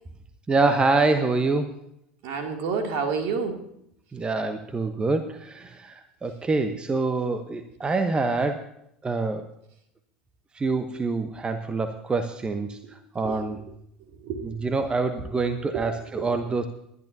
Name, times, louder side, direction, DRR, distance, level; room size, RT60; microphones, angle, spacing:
voice 1, 0.5-1.7 4.1-8.7 9.0-9.5 10.5-13.6 14.4-16.7, right 3 dB, 15° right, 9 dB, 1.0 m, -26 dB
voice 2, 2.2-3.6 12.8-12.9 13.2-13.6 14.2-14.4 15.7-15.8 16.2-16.3, right 5 dB, 50° right, 4 dB, 2.7 m, -29 dB
22.0 x 11.0 x 2.8 m, 0.75 s
figure-of-eight pair, 75°, 5 cm